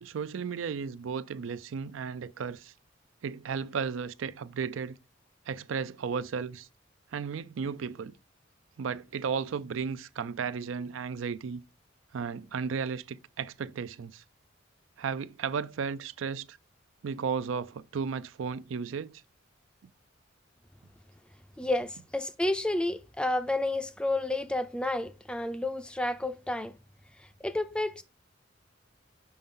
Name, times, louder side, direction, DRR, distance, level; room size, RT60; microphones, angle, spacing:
voice 1, 0.0-2.7 3.2-5.0 5.5-6.7 7.1-8.2 8.8-11.6 12.1-14.2 15.0-16.6 17.0-19.2, right 6 dB, 85° right, 0.4 m, -34 dB
voice 2, 21.6-26.7 27.4-28.0, left 2 dB, 5° left, 0.4 m, -30 dB
5.5 x 5.5 x 3.7 m
head